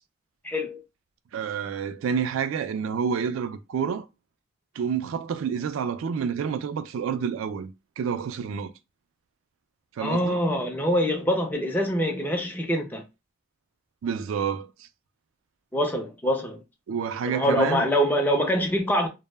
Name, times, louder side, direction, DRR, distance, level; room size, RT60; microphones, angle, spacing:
voice 1, 0.4-0.8 10.0-13.0 15.7-16.6 17.3-19.1, equal, 10° left, 0.4 m, -24 dB
voice 2, 1.3-4.1 4.7-8.7 10.0-10.4 14.0-14.9 16.9-17.9, right 7 dB, 80° right, 0.3 m, -29 dB
2.1 x 2.0 x 3.2 m
head